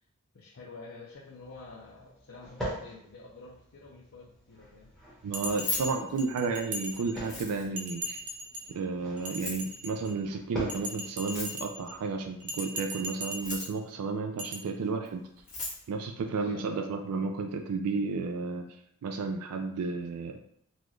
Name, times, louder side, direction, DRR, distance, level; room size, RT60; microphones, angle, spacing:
voice 1, 0.3-5.0 5.5-6.1 16.2-16.8, left 3 dB, 65° left, -5 dB, 0.6 m, -49 dB
sound 1, 1.1-13.5, equal, ahead, 1.1 m, -45 dB
voice 2, 5.2-8.2 8.7-15.2 15.9-18.7 19.0-20.4, right 4 dB, 85° right, 5 dB, 0.4 m, -32 dB
Keys jangling, 5.3-6.7 7.2-7.9 9.2-9.7 11.2-11.9 13.2-13.9 15.0-15.1 15.4-15.8, left 3 dB, 35° left, 1.2 m, -37 dB
Bell, 5.3-7.4 7.8-8.7 9.2-10.2 10.7-11.9 12.4-13.7 14.4-14.6, right 1 dB, 35° right, 0.6 m, -39 dB
4.1 x 2.4 x 3.0 m, 0.71 s
head